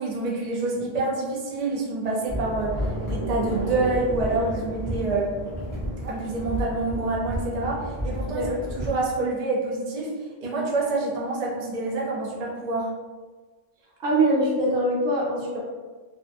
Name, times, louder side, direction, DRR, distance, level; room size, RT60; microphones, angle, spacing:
voice 1, 0.0-5.4 6.0-10.1 10.4-12.9, right 2 dB, 45° right, -4 dB, 0.5 m, -27 dB
sound 1, 2.3-8.9, equal, 20° right, 0.8 m, -31 dB
voice 2, 14.0-15.7, right 1 dB, 80° right, -2 dB, 1.0 m, -23 dB
2.6 x 2.2 x 2.6 m, 1.4 s
omnidirectional pair, 1.3 m